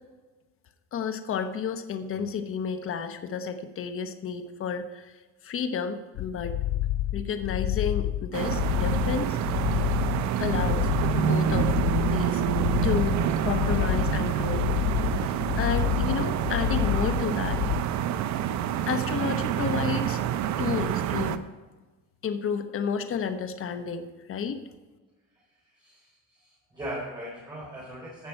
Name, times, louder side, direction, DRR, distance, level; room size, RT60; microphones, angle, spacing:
voice 1, 0.9-5.1 5.4-6.6 7.1-9.4 9.7-9.9 10.4-11.7 12.0-12.4 12.8-14.7 15.2-17.6 18.9-20.2 20.6-21.4 22.2-24.6, left 6 dB, 45° left, 8 dB, 1.0 m, -31 dB
sound 1, 6.1-17.8, left 14 dB, 80° left, 0.4 m, -29 dB
sound 2, 8.3-21.4, right 10 dB, 70° right, 0.8 m, -27 dB
voice 2, 25.8-28.3, right 1 dB, 15° right, -6 dB, 3.9 m, -39 dB
15.0 x 6.8 x 4.5 m, 1.3 s
cardioid pair, 120°, 29 cm